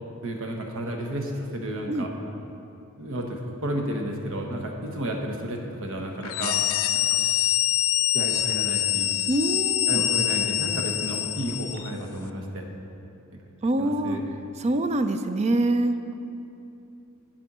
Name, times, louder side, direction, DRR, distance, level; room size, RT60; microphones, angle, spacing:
voice 1, 0.2-2.1 3.0-6.6 6.9-7.2 8.1-9.1 9.9-12.6 13.8-14.3, right 1 dB, 65° right, 2 dB, 1.1 m, -32 dB
sound 1, 6.2-11.9, left 13 dB, 65° left, 0.4 m, -25 dB
voice 2, 9.3-10.0 13.6-14.2 14.6-16.0, right 1 dB, 30° right, 9 dB, 0.4 m, -24 dB
11.5 x 4.4 x 6.1 m, 2.7 s
head